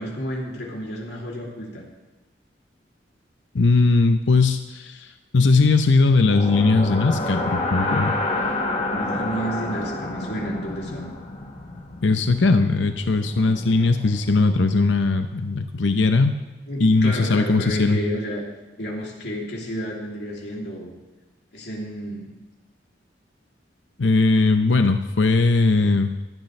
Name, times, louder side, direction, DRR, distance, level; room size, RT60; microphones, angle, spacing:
voice 1, 0.0-1.8 8.9-11.1 16.7-18.4 18.8-20.9 21.5-22.4, equal, 65° left, -2 dB, 3.0 m, -31 dB
voice 2, 3.5-8.1 12.0-16.4 16.8-18.0 24.0-26.1, left 3 dB, 90° left, 7 dB, 0.7 m, -19 dB
sound 1, 6.3-14.3, left 2 dB, 35° left, 1.5 m, -29 dB
16.0 x 12.0 x 3.3 m, 1.2 s
head